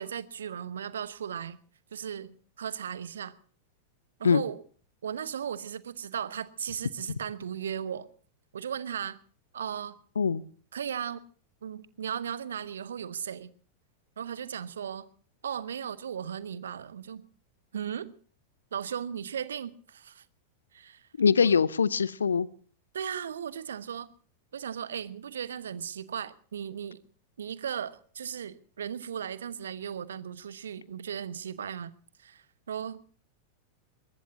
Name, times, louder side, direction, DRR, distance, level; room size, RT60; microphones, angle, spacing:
voice 1, 0.0-1.6 1.9-3.4 4.2-4.6 5.0-8.1 8.5-9.2 9.5-10.0 10.7-11.2 11.6-13.5 14.2-15.1 15.4-17.3 17.7-18.1 18.7-20.2 20.7-21.1 21.4-21.6 22.9-24.1 24.5-27.0 27.4-31.9 32.2-33.0, right 8 dB, 65° right, 1.1 m, -36 dB
voice 2, 21.2-22.5, left 6 dB, 70° left, 0.7 m, -23 dB
22.0 x 21.5 x 2.8 m
figure-of-eight pair, 90°, 0 cm